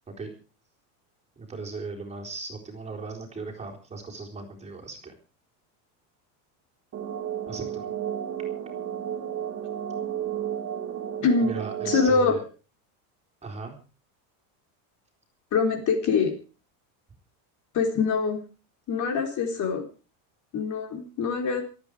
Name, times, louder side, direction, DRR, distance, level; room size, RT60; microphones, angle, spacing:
voice 1, 1.4-5.1 7.5-7.9 11.4-12.4 13.4-13.7, right 3 dB, 15° right, 0 dB, 4.0 m, -37 dB
sound 1, 6.9-12.1, right 9 dB, 35° right, 2.4 m, -32 dB
voice 2, 11.2-11.5 11.9-12.3 15.5-16.4 17.7-18.4 18.9-19.9 20.5-21.6, left 5 dB, 40° left, 4 dB, 4.1 m, -24 dB
27.0 x 9.1 x 4.9 m, 0.36 s
supercardioid pair, 145°, 44 cm